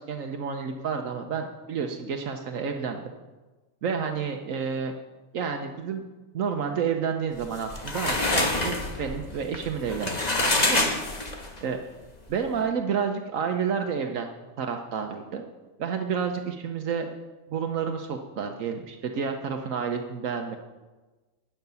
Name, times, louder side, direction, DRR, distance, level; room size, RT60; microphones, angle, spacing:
voice 1, 0.0-3.1 3.8-4.9 5.3-6.1 6.3-10.9 11.6-11.8 12.3-14.3 14.6-15.4 15.8-17.1 17.5-20.6, right 6 dB, 80° right, 4 dB, 1.3 m, -30 dB
sound 1, 7.4-11.6, left 2 dB, 35° left, 1.5 m, -26 dB
12.5 x 5.9 x 9.4 m, 1.2 s
omnidirectional pair, 1.4 m